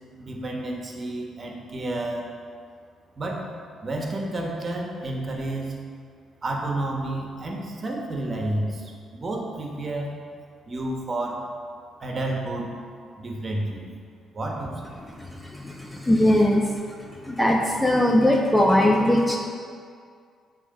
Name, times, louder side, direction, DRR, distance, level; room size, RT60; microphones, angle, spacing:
voice 1, 0.2-2.3 3.2-3.5 3.8-5.7 6.4-10.2 10.7-11.5 12.0-12.7 13.2-13.9 14.3-14.9, right 1 dB, 35° right, 0 dB, 1.3 m, -30 dB
voice 2, 15.5-16.7 17.2-19.4, left 1 dB, 10° left, 1 dB, 0.6 m, -20 dB
8.4 x 3.3 x 6.6 m, 2.2 s
cardioid pair, 90°, 0 cm